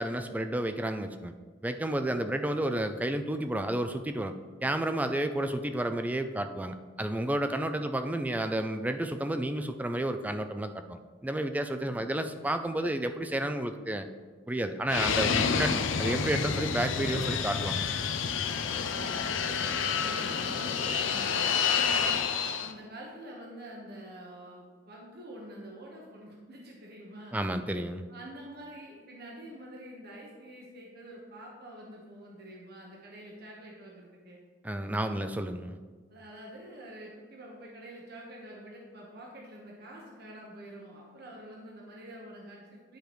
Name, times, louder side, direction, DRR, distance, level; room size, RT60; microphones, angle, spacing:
voice 1, 0.0-1.3 1.6-4.4 4.6-14.1 14.5-17.8 27.3-28.1 34.6-35.8, right 1 dB, 10° right, 8 dB, 0.3 m, -31 dB
Fixed-wing aircraft airplane, 14.9-22.7, left 6 dB, 85° left, 0.5 m, -29 dB
voice 2, 18.7-27.4 28.1-34.4 36.1-43.0, right 1 dB, 55° right, -2 dB, 1.1 m, -47 dB
10.5 x 5.0 x 3.1 m, 1.4 s
head